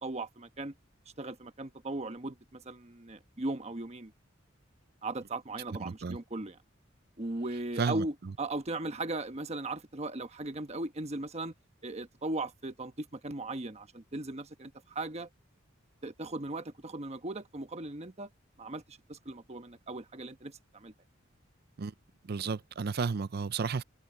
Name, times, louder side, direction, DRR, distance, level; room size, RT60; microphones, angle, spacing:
voice 1, 0.0-0.7 1.2-4.1 5.0-6.6 7.2-11.5 11.8-15.3 16.0-18.3 18.6-20.9, right 2 dB, 35° right, 1.2 m, -38 dB
voice 2, 5.8-6.2 7.8-8.1 21.8-21.9 22.3-23.8, right 5 dB, 50° right, 0.5 m, -32 dB
open air
head